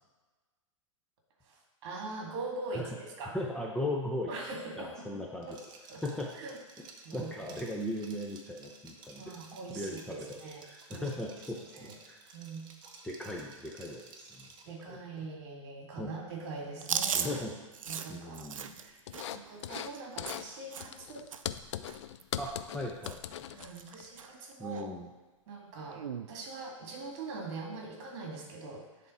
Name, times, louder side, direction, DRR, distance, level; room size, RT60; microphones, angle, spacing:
voice 1, 1.4-3.4 4.3-5.2 5.5-5.6 5.9-6.0 6.4-6.6 7.0-7.6 9.2-10.6 10.9-11.1 11.7-12.0 12.3-12.7 14.6-17.3 17.9-18.5 18.8-19.0 19.3-21.3 23.5-24.9 25.5-29.1, right 3 dB, 50° right, 0 dB, 2.1 m, -42 dB
voice 2, 3.3-4.3 4.8-5.5 6.0-6.3 7.1-9.3 9.7-10.4 10.6-12.2 13.0-14.5 14.9-15.0 16.0-16.1 17.1-17.5 18.1-18.8 22.4-23.4 24.6-25.1, left 1 dB, 5° left, -2 dB, 0.6 m, -38 dB
Liquid, 5.4-14.8, right 4 dB, 25° right, 0.9 m, -54 dB
Chewing mastication, 16.8-21.0 21.3-21.6 21.9-22.8 23.0-23.3 23.6-24.3 24.7-24.8 25.9-26.3, right 7 dB, 80° right, 0.5 m, -37 dB
sound 1, 19.1-19.9 20.2-20.5 20.8-24.1, left 11 dB, 60° left, 0.4 m, -40 dB
10.5 x 3.6 x 4.2 m, 1.2 s
hypercardioid pair, 130°, 17 cm